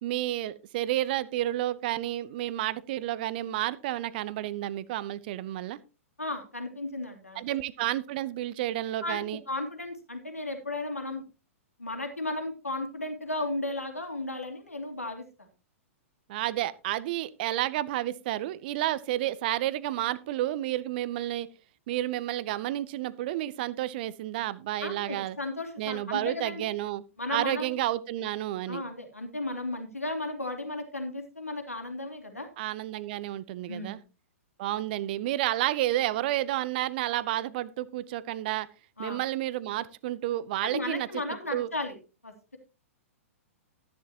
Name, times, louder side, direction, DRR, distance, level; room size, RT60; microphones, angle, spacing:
voice 1, 0.0-5.8 7.3-9.4 16.3-21.5 21.9-25.4 25.8-27.0 27.3-28.8 32.6-34.0 34.6-38.7 39.0-41.1 41.5-41.7, right 14 dB, 40° right, 18 dB, 0.8 m, -30 dB
voice 2, 6.2-7.4 9.0-11.2 11.8-15.2 24.8-26.7 27.2-27.8 28.7-32.5 33.7-34.0 39.0-39.2 40.6-42.0 42.2-42.6, left 2 dB, 80° left, 5 dB, 2.6 m, -35 dB
13.5 x 10.5 x 2.9 m, 0.31 s
figure-of-eight pair, 110°, 8 cm